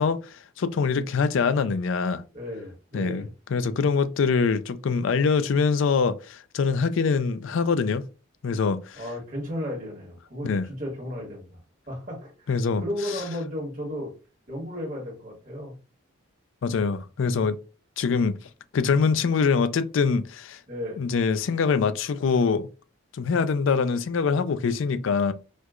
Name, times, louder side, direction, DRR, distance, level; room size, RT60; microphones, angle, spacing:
voice 1, 0.0-2.2 2.9-8.0 8.4-9.0 10.4-10.6 12.5-12.8 16.6-17.6 18.0-18.4 18.7-20.6 21.0-22.7 23.1-25.3, left 5 dB, 65° left, 0.4 m, -24 dB
voice 2, 2.3-3.3 8.9-11.6 11.9-12.5 12.8-14.1 14.5-15.8 18.0-18.2 20.7-21.0, left 1 dB, 40° right, 1.4 m, -34 dB
4.4 x 2.3 x 2.3 m
head